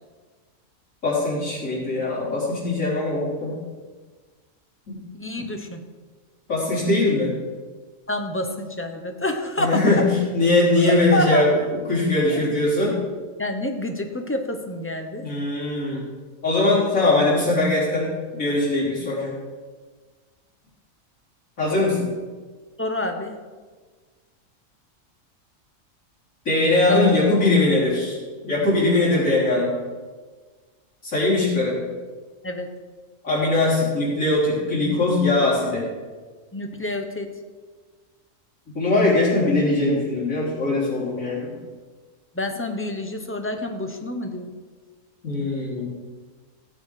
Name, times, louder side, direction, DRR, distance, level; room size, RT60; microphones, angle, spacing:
voice 1, 1.0-3.5 4.9-5.0 6.5-7.3 9.6-13.0 15.2-16.1 16.4-18.1 18.3-19.3 21.6-22.0 26.5-28.2 28.4-29.7 31.0-31.7 33.2-35.8 38.7-41.5 45.2-45.9, left 2 dB, 85° left, -7 dB, 4.4 m, -21 dB
voice 2, 5.1-5.8 8.1-9.9 10.8-11.5 12.3-12.4 13.4-15.3 22.8-23.4 26.9-27.1 32.4-32.7 36.5-37.3 42.3-44.5, left 2 dB, 10° left, 5 dB, 0.9 m, -28 dB
16.0 x 7.8 x 5.0 m, 1.4 s
omnidirectional pair, 1.4 m